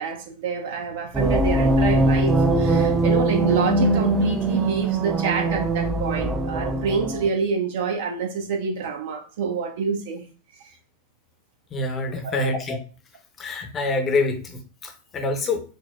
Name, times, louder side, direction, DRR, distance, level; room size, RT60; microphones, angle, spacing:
voice 1, 0.0-10.2 12.2-12.5, right 5 dB, 55° right, 2 dB, 0.8 m, -27 dB
sound 1, 1.1-7.3, right 2 dB, 15° right, 0.3 m, -21 dB
voice 2, 11.7-12.8 13.4-15.6, left 3 dB, 25° left, 5 dB, 0.7 m, -26 dB
4.2 x 2.0 x 2.3 m, 0.36 s
figure-of-eight pair, 90°, 0 cm